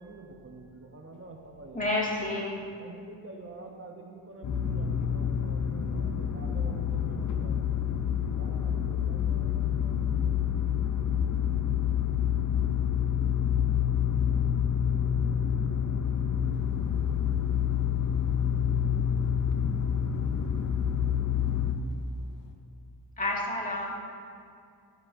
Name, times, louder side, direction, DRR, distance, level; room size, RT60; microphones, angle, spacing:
voice 1, 0.0-1.9 2.8-7.8 8.4-10.2, right 3 dB, 30° right, 1 dB, 0.9 m, -47 dB
voice 2, 1.7-2.6 23.2-23.9, left 2 dB, 15° left, -4 dB, 2.1 m, -29 dB
sound 1, 4.4-21.7, left 8 dB, 40° left, 0.7 m, -27 dB
voice 3, 16.5-22.5, left 4 dB, 70° left, 3 dB, 1.1 m, -60 dB
12.0 x 10.5 x 2.7 m, 2.4 s
cardioid pair, 105°, 46 cm